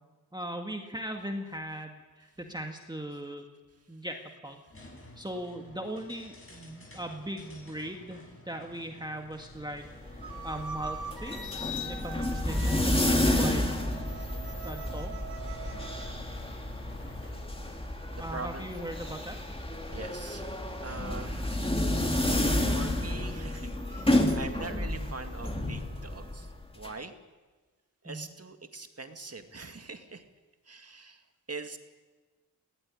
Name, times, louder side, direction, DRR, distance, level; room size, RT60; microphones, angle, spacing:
voice 1, 0.3-3.5 3.9-4.6 5.2-9.8 10.1-13.7 14.6-15.5 18.2-19.4 24.9-25.1 28.1-28.3, right 1 dB, 10° right, 3 dB, 1.9 m, -39 dB
sound 1, 4.7-17.5, left 1 dB, 35° left, 6.9 m, -51 dB
sound 2, 9.8-26.9, left 1 dB, 15° left, 2.6 m, -30 dB
sound 3, 10.2-16.1, right 5 dB, 90° right, 1.9 m, -44 dB
voice 2, 18.1-19.1 19.9-20.4 20.8-21.6 22.7-26.5 26.8-27.1 28.0-30.2 30.7-31.2 31.5-31.8, right 3 dB, 40° right, 6 dB, 2.1 m, -42 dB
19.5 x 16.5 x 9.9 m, 1.3 s
wide cardioid pair, 80°, 36 cm